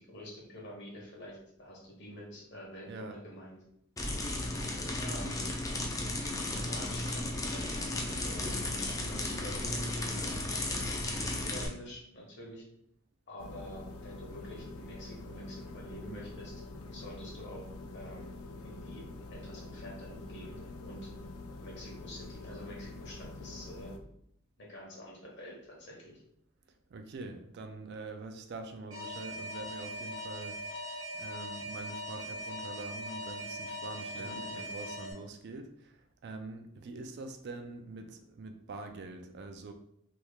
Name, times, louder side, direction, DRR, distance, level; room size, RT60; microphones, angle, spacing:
voice 1, 0.0-3.6 5.0-5.5 6.6-10.4 11.0-12.6 13.3-16.5 16.9-17.7 17.9-18.3 18.6-19.0 19.3-21.0 21.6-23.9 24.6-26.2 34.1-34.6, equal, 55° left, -3 dB, 1.1 m, -47 dB
voice 2, 2.9-3.2 26.9-39.7, right 3 dB, 55° right, 6 dB, 0.4 m, -45 dB
sound 1, 4.0-11.7, left 2 dB, 15° left, 0.4 m, -34 dB
sound 2, 13.4-24.0, left 2 dB, 90° left, 0.4 m, -46 dB
Alarm, 28.9-35.1, equal, 70° right, 1.0 m, -40 dB
3.0 x 2.3 x 3.4 m, 0.73 s
head